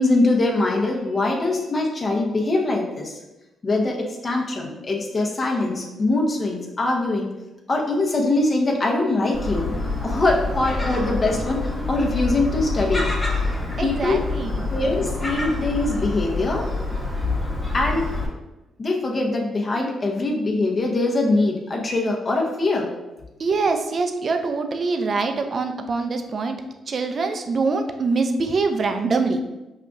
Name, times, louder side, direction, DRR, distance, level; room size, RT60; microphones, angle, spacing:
voice 1, 0.0-3.2 3.6-7.3 7.7-9.8 10.0-13.0 13.8-14.2 14.7-16.7 17.7-18.1 18.8-22.9, left 2 dB, 40° left, 0 dB, 0.9 m, -22 dB
Gull seagull, 9.3-18.3, left 2 dB, 20° left, 1.2 m, -27 dB
voice 2, 13.8-14.7 23.4-26.6 26.9-29.4, right 4 dB, 50° right, 6 dB, 0.4 m, -24 dB
5.5 x 2.3 x 2.6 m, 1.0 s
supercardioid pair, 65°, 0 cm